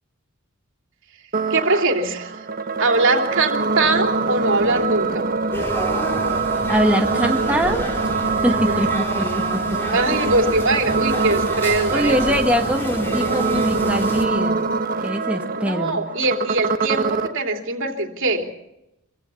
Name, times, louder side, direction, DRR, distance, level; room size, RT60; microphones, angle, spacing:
Glitchy Tones Loop, 1.3-17.3, right 4 dB, 40° right, 1.5 m, -24 dB
voice 1, 1.5-2.5 2.8-5.3 8.5-8.8 9.9-12.2 15.6-18.4, right 2 dB, 60° right, 4 dB, 3.2 m, -22 dB
sound 1, 5.5-14.2, equal, 10° left, 4.6 m, -30 dB
voice 2, 6.7-7.8 8.4-9.8 11.9-14.7 15.0-16.0, equal, 5° right, 2 dB, 1.6 m, -23 dB
26.5 x 16.0 x 7.2 m, 0.87 s
head